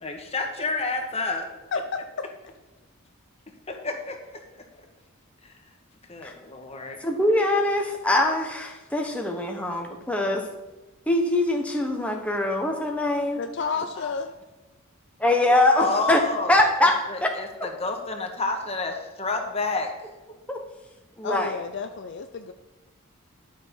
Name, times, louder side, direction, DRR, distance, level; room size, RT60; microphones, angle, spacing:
voice 1, 0.0-1.5 3.7-4.4 6.1-7.0 14.0-14.1 15.7-19.9, left 3 dB, 30° left, 3 dB, 1.3 m, -29 dB
voice 2, 1.7-2.3 13.4-14.3 15.5-15.6 21.2-22.5, left 4 dB, 55° left, 7 dB, 0.5 m, -31 dB
voice 3, 7.0-10.4 11.1-13.4 15.2-16.2 16.5-17.3 20.5-20.6 21.2-21.5, left 1 dB, 5° left, 1 dB, 1.0 m, -23 dB
11.5 x 6.4 x 5.3 m, 1.1 s
head